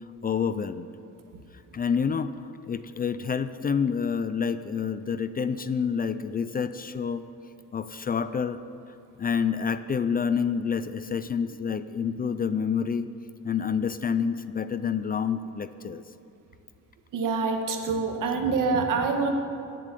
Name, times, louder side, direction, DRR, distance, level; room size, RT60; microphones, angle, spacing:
voice 1, 0.2-0.9 1.7-7.2 7.7-8.6 9.2-13.1 13.4-16.0, left 6 dB, 30° left, 13 dB, 0.4 m, -28 dB
voice 2, 17.1-19.3, right 4 dB, 75° right, 4 dB, 1.9 m, -26 dB
17.0 x 7.8 x 9.8 m, 2.7 s
cardioid pair, 145°, 32 cm